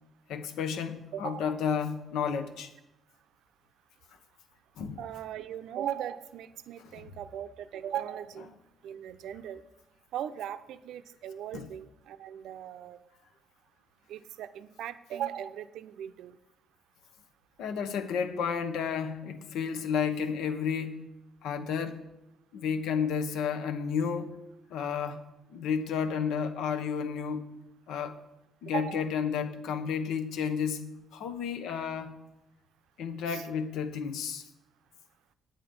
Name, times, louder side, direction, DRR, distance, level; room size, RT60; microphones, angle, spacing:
voice 1, 0.3-2.7 4.8-5.0 6.8-7.0 11.5-11.7 17.6-21.1 21.4-22.1 22.5-24.3 24.7-25.3 25.5-27.5 27.9-28.1 28.6-32.2 33.0-34.4, left 6 dB, 85° left, 1.0 m, -32 dB
voice 2, 5.0-8.5 8.8-9.6 10.1-13.0 14.1-16.4 28.7-29.0 33.3-33.4, right 10 dB, 75° right, 0.6 m, -38 dB
9.0 x 8.9 x 5.2 m
cardioid pair, 170°, 0 cm